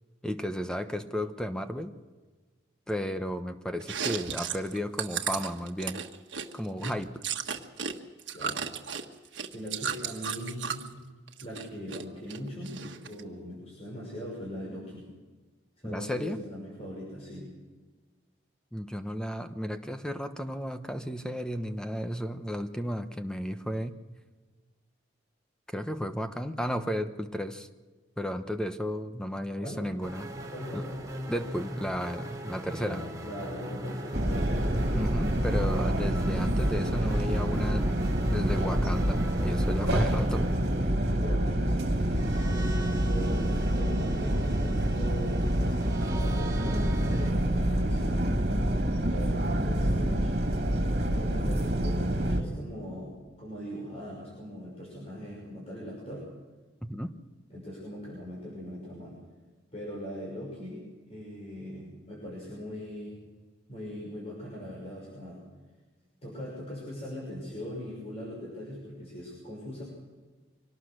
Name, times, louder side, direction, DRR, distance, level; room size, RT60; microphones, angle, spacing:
voice 1, 0.2-1.9 2.9-6.0 6.5-7.1 15.8-16.4 18.7-24.0 25.7-27.7 28.2-30.3 30.7-30.8 31.3-33.0 34.9-38.0 38.3-40.5 56.9-57.1, equal, 5° left, 8 dB, 1.0 m, -33 dB
Chewing mastication, 3.8-7.9 8.2-10.9 11.3-12.0 12.3-13.2, right 7 dB, 70° right, 1.5 m, -34 dB
voice 2, 8.3-8.7 9.5-10.9 11.4-15.0 15.8-17.5 29.6-29.8 30.5-30.9 32.7-34.7 41.0-48.4 49.0-50.3 51.1-56.2 57.5-59.2 59.7-60.8 61.1-63.2 63.7-65.4 66.2-69.8, equal, 30° left, -4 dB, 6.0 m, -40 dB
sound 1, 30.0-47.3, right 1 dB, 20° right, 2.8 m, -40 dB
sound 2, 34.1-52.4, right 1 dB, 55° right, 2.8 m, -27 dB
24.5 x 18.5 x 6.6 m, 1.3 s
head